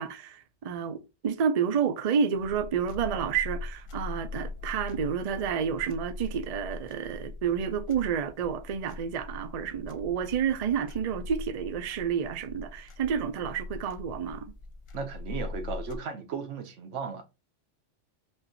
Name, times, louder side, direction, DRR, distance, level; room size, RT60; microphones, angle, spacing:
voice 1, 0.0-14.5, right 7 dB, 50° right, 0.5 m, -30 dB
sound 1, 2.3-16.0, left 3 dB, 45° left, 0.4 m, -41 dB
voice 2, 14.9-17.2, right 5 dB, 85° right, 1.1 m, -36 dB
5.5 x 2.6 x 2.6 m
omnidirectional pair, 1.2 m